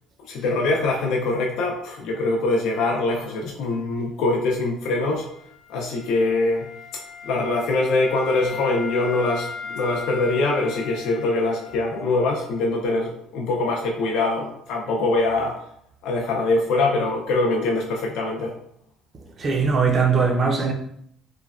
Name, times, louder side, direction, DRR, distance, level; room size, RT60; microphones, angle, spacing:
voice 1, 0.3-5.3 5.7-6.7 7.2-15.6 16.0-18.5, left 2 dB, 75° left, 0.4 m, -23 dB
Wind instrument woodwind instrument, 4.9-12.7, left 5 dB, 35° left, 0.7 m, -38 dB
voice 2, 19.4-20.7, right 5 dB, 35° right, 0.4 m, -20 dB
3.1 x 2.2 x 2.3 m
cardioid pair, 140°, 0 cm